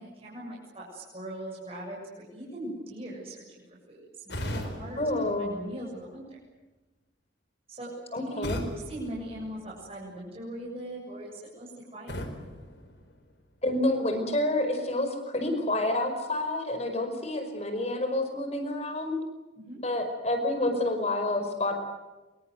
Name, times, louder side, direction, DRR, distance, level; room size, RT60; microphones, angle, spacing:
voice 1, 0.0-3.6 3.9-6.4 7.7-12.2 19.6-19.8, right 1 dB, 30° right, -4 dB, 7.3 m, -40 dB
sound 1, 4.3-6.3 8.4-10.1 12.1-13.7, equal, 65° left, 4.3 m, -39 dB
voice 2, 5.0-5.6 8.1-8.6 13.6-19.2 19.8-21.7, left 1 dB, 35° left, 7 dB, 5.3 m, -28 dB
26.5 x 24.0 x 8.0 m, 1.1 s
head